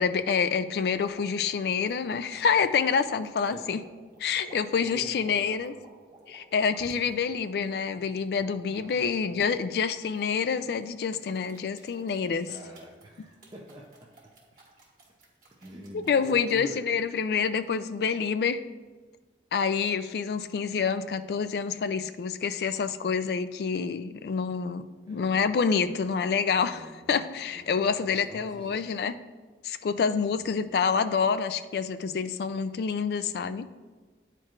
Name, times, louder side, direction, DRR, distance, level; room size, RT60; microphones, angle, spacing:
voice 1, 0.0-3.8 4.2-5.7 6.3-12.6 16.1-18.6 19.5-29.2 29.6-33.7, left 6 dB, 60° left, 11 dB, 0.3 m, -27 dB
sound 1, 0.9-7.1 7.7-9.0 10.1-10.7 11.1-16.6, right 1 dB, 50° right, 1.7 m, -53 dB
voice 2, 4.9-5.6 8.7-9.6 12.5-14.1 15.6-17.1 25.1-25.5 25.8-26.0 26.7-27.2 27.5-28.9 30.3-30.5, right 1 dB, 25° right, -3 dB, 0.5 m, -46 dB
9.8 x 4.5 x 2.4 m, 1.4 s
head